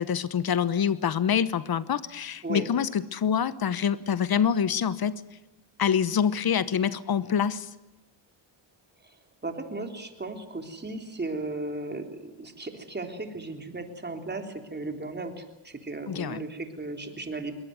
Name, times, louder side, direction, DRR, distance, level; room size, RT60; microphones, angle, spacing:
voice 1, 0.0-5.1 5.8-7.7 16.1-16.4, left 8 dB, 50° left, 16 dB, 1.1 m, -26 dB
voice 2, 9.4-17.5, right 2 dB, 20° right, 5 dB, 3.5 m, -36 dB
21.5 x 18.5 x 9.4 m, 0.95 s
cardioid pair, 80°, 47 cm